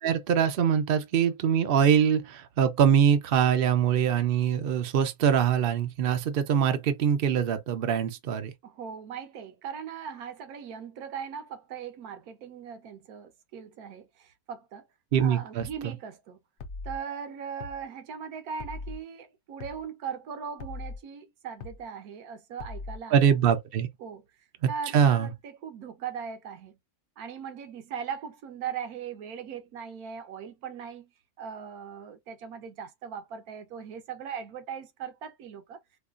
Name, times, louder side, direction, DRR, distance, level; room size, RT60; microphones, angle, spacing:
voice 1, 0.0-8.5 15.1-15.9 23.1-23.9 24.6-25.3, right 8 dB, 60° right, 0.6 m, -23 dB
voice 2, 8.6-14.8 15.2-16.4 16.8-23.2 24.0-24.2 24.7-26.8 27.2-31.1 31.4-35.8, right 7 dB, 80° right, 1.3 m, -39 dB
sound 1, 15.6-15.8 16.6-17.0 17.6-17.8 18.6-19.0 19.6-19.8 20.6-21.0 21.6-21.8 22.6-23.0, left 3 dB, 60° left, 0.8 m, -39 dB
4.9 x 2.3 x 2.4 m
omnidirectional pair, 1.6 m